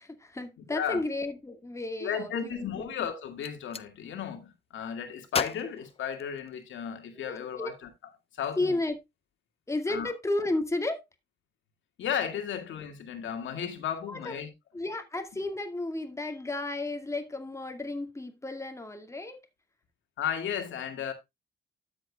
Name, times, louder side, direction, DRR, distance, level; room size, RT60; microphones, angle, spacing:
voice 1, 0.0-2.9 7.3-7.7 8.6-9.0 9.7-11.0 14.1-14.4 14.7-19.5, left 2 dB, 15° left, 2.2 m, -33 dB
voice 2, 0.7-1.0 2.0-7.9 8.4-8.8 9.9-10.1 12.0-14.5 20.2-21.1, left 8 dB, 75° left, 2.3 m, -34 dB
Gunshot gunfire, 3.2-3.9 5.3-6.8, left 6 dB, 30° left, 0.6 m, -35 dB
12.5 x 7.7 x 2.4 m
cardioid pair, 90°, 20 cm